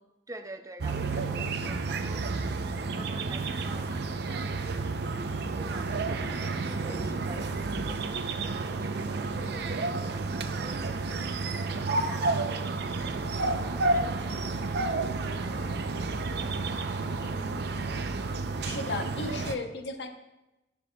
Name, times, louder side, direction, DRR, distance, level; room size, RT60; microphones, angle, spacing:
voice 1, 0.3-2.3 2.6-6.3 6.6-14.7 15.2-16.9, right 1 dB, 20° right, 7 dB, 0.4 m, -48 dB
sound 1, 0.8-19.6, right 3 dB, 65° right, 0.6 m, -31 dB
voice 2, 18.6-20.1, left 3 dB, 70° left, 6 dB, 0.9 m, -35 dB
10.5 x 9.7 x 2.3 m, 0.96 s
head